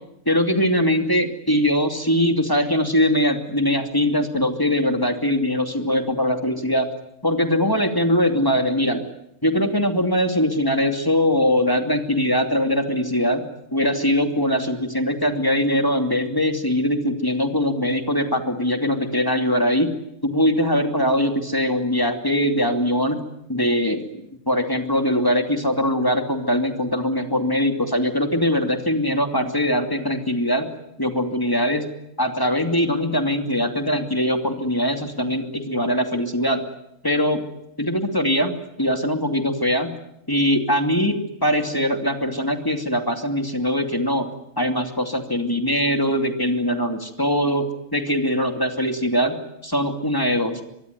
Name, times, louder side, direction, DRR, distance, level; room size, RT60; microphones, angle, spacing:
voice 1, 0.3-6.9 7.2-9.1 9.4-13.4 13.7-19.9 20.2-23.2 23.5-24.0 24.5-30.7 31.0-31.8 32.2-36.6 37.0-37.4 37.8-38.5 38.8-39.9 40.3-44.3 44.6-49.3 49.6-50.6, equal, 15° left, 5 dB, 2.7 m, -21 dB
24.5 x 23.0 x 9.6 m, 0.79 s
omnidirectional pair, 1.3 m